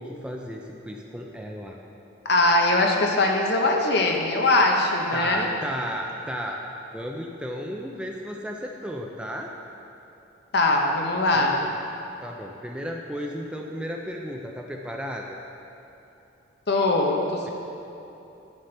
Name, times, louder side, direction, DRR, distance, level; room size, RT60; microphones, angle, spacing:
voice 1, 0.0-1.8 5.1-6.6 6.9-9.5 11.3-11.7 12.2-15.4, equal, 5° right, 0 dB, 0.4 m, -34 dB
voice 2, 2.2-5.5 10.5-11.7 16.7-17.5, left 2 dB, 55° left, 1 dB, 0.9 m, -21 dB
10.5 x 7.5 x 3.3 m, 3.0 s
head